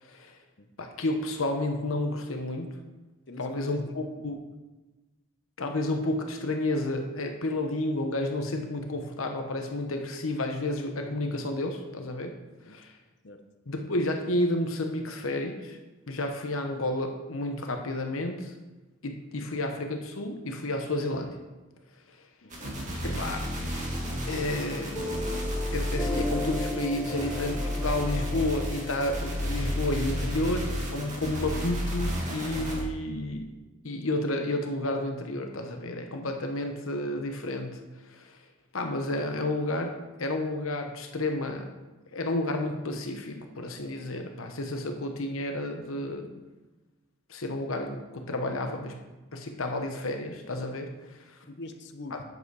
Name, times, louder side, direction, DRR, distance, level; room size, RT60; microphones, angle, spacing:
voice 1, 0.0-0.4 0.8-2.8 3.4-4.4 5.6-12.4 12.7-12.9 13.7-15.8 16.1-18.5 19.0-21.4 22.1-22.2 23.0-23.5 24.3-33.5 33.8-38.4 38.7-41.7 42.1-46.4 47.3-49.0 49.3-51.4 52.1-52.2, left 1 dB, 80° left, 4 dB, 1.0 m, -31 dB
voice 2, 3.3-3.8 12.6-12.8 13.2-13.4 22.4-22.8 51.5-52.2, left 2 dB, 55° left, 7 dB, 0.9 m, -43 dB
sound 1, 22.5-32.8, equal, 35° right, 2.2 m, -32 dB
sound 2, 22.6-23.8, right 1 dB, 65° right, 1.2 m, -40 dB
Piano, 24.9-32.0, left 2 dB, 15° left, 2.1 m, -37 dB
9.3 x 8.0 x 4.8 m, 1.1 s
head